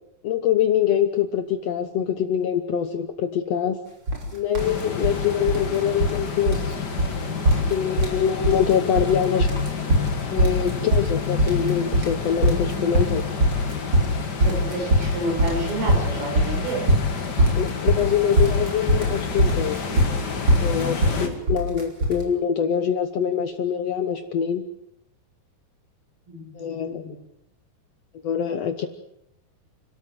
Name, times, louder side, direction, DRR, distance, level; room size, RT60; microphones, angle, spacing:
voice 1, 0.2-3.8 4.3-6.8 7.5-9.5 10.3-13.3 17.5-19.8 20.6-24.6 26.5-27.1 28.2-28.9, left 8 dB, 70° left, 9 dB, 1.6 m, -24 dB
sound 1, 4.1-4.2 4.5-5.2 5.5-6.2 6.5-6.7 7.0-7.1 7.4-8.2 8.4-9.1 9.4-22.2, equal, 30° right, 3.9 m, -21 dB
sound 2, 4.6-21.3, left 6 dB, 40° left, 1.6 m, -30 dB
voice 2, 14.4-16.8 20.8-21.3 26.3-27.2, right 1 dB, 85° right, 0 dB, 8.4 m, -30 dB
29.5 x 13.0 x 7.8 m, 0.80 s
omnidirectional pair, 4.3 m